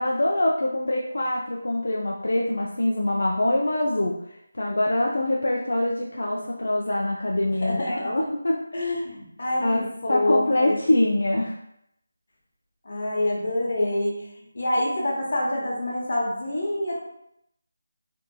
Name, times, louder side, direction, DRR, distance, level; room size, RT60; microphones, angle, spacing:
voice 1, 0.0-4.2 4.5-8.6 9.6-11.6, left 1 dB, 80° left, -2 dB, 0.3 m, -24 dB
voice 2, 7.5-8.1 8.7-10.8 12.8-14.3 14.5-17.0, left 1 dB, 55° left, -3 dB, 0.8 m, -26 dB
2.6 x 2.5 x 2.2 m, 0.77 s
figure-of-eight pair, 170°, 0 cm